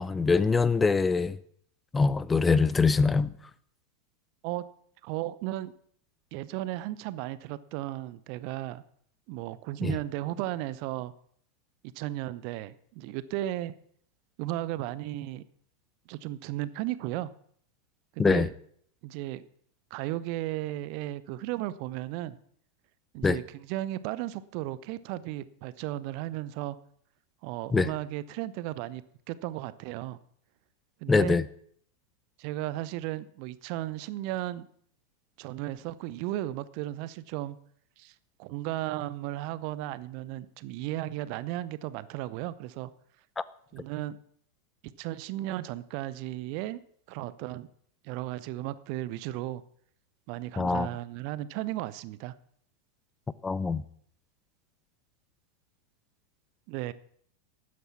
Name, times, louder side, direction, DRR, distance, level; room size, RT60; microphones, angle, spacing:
voice 1, 0.0-1.4 1.9-3.3 9.8-10.0 18.2-18.5 23.2-23.4 27.7-27.9 31.1-31.4 43.4-43.5 50.6-50.9 53.4-53.8, left 4 dB, 15° left, 0.6 m, -23 dB
voice 2, 5.0-5.7 6.3-8.8 9.3-11.1 11.9-13.7 14.4-15.4 16.1-17.3 18.1-18.5 19.0-19.5 19.9-22.4 23.1-26.8 27.4-30.2 31.0-31.4 32.4-34.7 35.4-37.6 38.0-42.9 43.7-44.2 45.0-46.8 47.1-47.7 48.0-49.6 50.3-52.3 56.7-56.9, right 15 dB, 45° right, 0.6 m, -35 dB
12.5 x 9.6 x 5.9 m
figure-of-eight pair, 90°, 0 cm